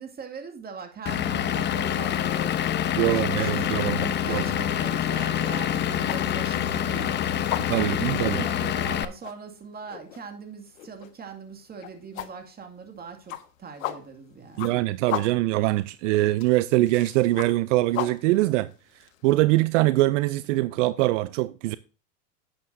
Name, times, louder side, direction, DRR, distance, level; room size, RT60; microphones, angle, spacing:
voice 1, 0.0-7.2 7.7-14.8, right 5 dB, 25° right, 2.3 m, -41 dB
Vehicle / Engine, 1.1-9.1, left 10 dB, 25° left, 0.8 m, -26 dB
voice 2, 3.0-4.4 7.7-8.5 14.6-21.8, right 18 dB, 65° right, 0.6 m, -23 dB
sound 1, 3.4-19.4, left 12 dB, 85° left, 1.4 m, -38 dB
11.5 x 8.6 x 2.7 m
supercardioid pair, 120°, 39 cm